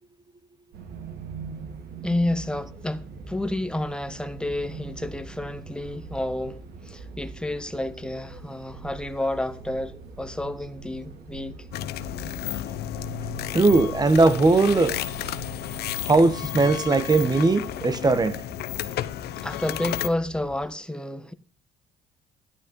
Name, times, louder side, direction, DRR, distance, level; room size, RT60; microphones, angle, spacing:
sound 1, 0.7-20.7, right 4 dB, 75° right, 3.8 m, -42 dB
voice 1, 2.0-11.7 19.4-21.3, left 1 dB, 5° left, 1.3 m, -30 dB
sound 2, 11.7-20.1, left 13 dB, 75° left, 1.1 m, -32 dB
voice 2, 13.5-15.0 16.1-18.4, right 3 dB, 25° right, 1.1 m, -19 dB
13.0 x 11.5 x 5.3 m
cardioid pair, 110°, 17 cm